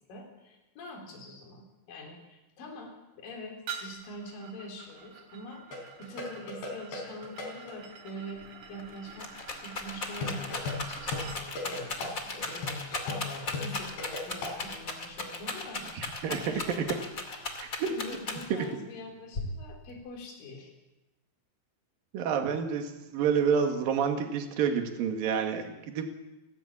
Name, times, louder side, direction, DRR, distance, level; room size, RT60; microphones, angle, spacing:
voice 1, 0.1-8.4 8.7-9.3 9.6-17.0 17.3-20.7, left 1 dB, 55° left, 1 dB, 5.4 m, -44 dB
sound 1, 3.7-11.5, right 6 dB, 85° right, 5.1 m, -46 dB
sound 2, 5.7-7.7 10.2-14.6, left 3 dB, 85° left, 6.5 m, -37 dB
Rattle, 8.4-8.5 8.8-18.7 19.3-20.0, left 3 dB, 30° left, 1.9 m, -37 dB
voice 2, 16.0-16.4 17.6-17.9 22.1-26.1, right 7 dB, 60° right, 4 dB, 3.5 m, -29 dB
29.0 x 13.0 x 8.7 m, 1.0 s
omnidirectional pair, 4.9 m